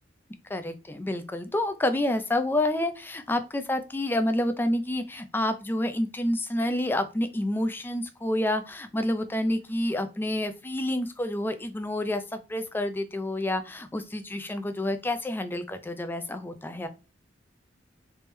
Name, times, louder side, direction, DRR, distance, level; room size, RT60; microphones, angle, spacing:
voice 1, 0.5-12.2 12.5-16.9, left 1 dB, 10° left, 9 dB, 0.4 m, -28 dB
3.4 x 3.1 x 3.1 m, 0.30 s
head